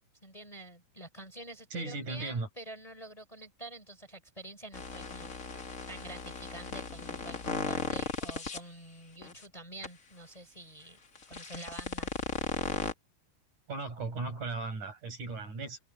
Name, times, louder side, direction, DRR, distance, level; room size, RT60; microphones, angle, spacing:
voice 1, 0.2-11.0 11.3-12.1, right 2 dB, 10° left, 3.9 m, -48 dB
voice 2, 1.7-2.5 13.7-15.8, right 3 dB, 60° right, 6.7 m, -36 dB
sound 1, 4.7-8.6 9.2-9.4 9.8-9.9 11.2-12.9, left 4 dB, 30° left, 1.7 m, -36 dB
omnidirectional pair, 3.9 m